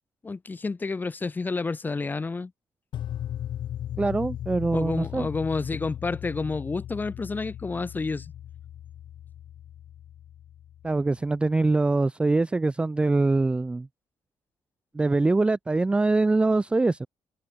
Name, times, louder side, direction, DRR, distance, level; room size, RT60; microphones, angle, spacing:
voice 1, 0.2-2.5 4.7-8.3, left 4 dB, 20° left, 3.1 m, -30 dB
sound 1, 2.9-11.1, left 11 dB, 65° left, 1.7 m, -37 dB
voice 2, 4.0-5.3 10.8-13.9 14.9-17.1, right 3 dB, 10° right, 0.4 m, -23 dB
open air
cardioid pair, 140°, 9 cm